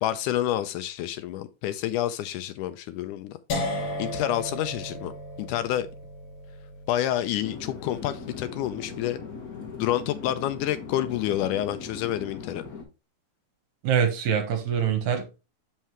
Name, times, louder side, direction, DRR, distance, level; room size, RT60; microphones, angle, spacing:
voice 1, 0.0-3.4 4.0-5.1 5.4-5.9 6.9-9.2 9.8-12.6, left 12 dB, 80° left, 2.0 m, -28 dB
sound 1, 3.5-9.4, left 1 dB, 55° left, 2.2 m, -36 dB
Chatter / Fixed-wing aircraft airplane, 7.4-12.8, left 5 dB, 40° left, 1.5 m, -39 dB
voice 2, 13.8-15.4, right 8 dB, 65° right, 2.4 m, -24 dB
7.4 x 5.6 x 3.1 m
omnidirectional pair, 3.8 m